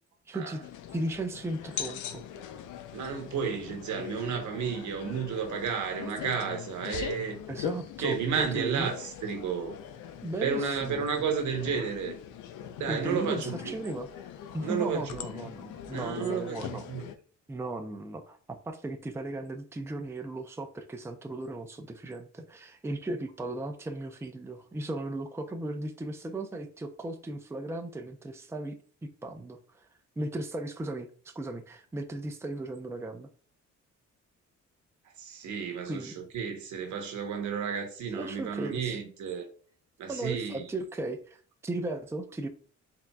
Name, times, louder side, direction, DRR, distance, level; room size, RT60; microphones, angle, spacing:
voice 1, 0.3-0.6 0.9-2.2 7.5-8.9 10.2-11.0 12.9-14.1 14.5-16.9 17.5-18.4 18.7-28.7 29.2-29.9 30.2-33.3 35.9-36.1 38.1-39.0 40.1-42.5, right 2 dB, 10° right, 0.5 m, -36 dB
sound 1, 0.6-17.1, left 9 dB, 85° left, 0.6 m, -41 dB
voice 2, 2.9-7.4 8.0-9.8 10.4-12.1 12.8-13.7 14.6-15.1 15.9-17.0 35.2-39.5 40.0-40.6, right 6 dB, 75° right, 1.1 m, -32 dB
4.3 x 3.7 x 2.3 m
cardioid pair, 90°, 30 cm